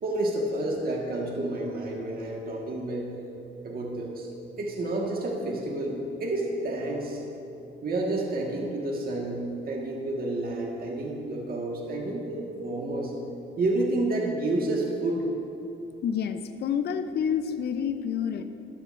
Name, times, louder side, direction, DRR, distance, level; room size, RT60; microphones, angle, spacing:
voice 1, 0.0-3.1 3.6-4.3 4.6-7.2 7.8-13.1 13.6-15.2, right 2 dB, 50° right, -1 dB, 1.5 m, -30 dB
voice 2, 16.0-18.4, left 7 dB, 55° left, 9 dB, 0.5 m, -28 dB
13.5 x 11.5 x 2.5 m, 2.9 s
cardioid pair, 90°, 20 cm